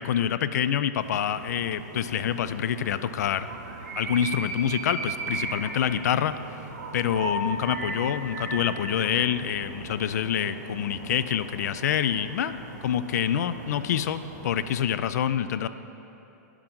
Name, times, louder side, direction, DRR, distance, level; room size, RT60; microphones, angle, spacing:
voice 1, 0.0-3.5 4.0-6.3 6.9-12.6 12.8-15.7, left 9 dB, 70° left, 13 dB, 0.4 m, -26 dB
sound 1, 1.0-14.9, right 2 dB, 75° right, 1.3 m, -37 dB
10.0 x 6.0 x 3.7 m, 3.0 s
hypercardioid pair, 160°, 9 cm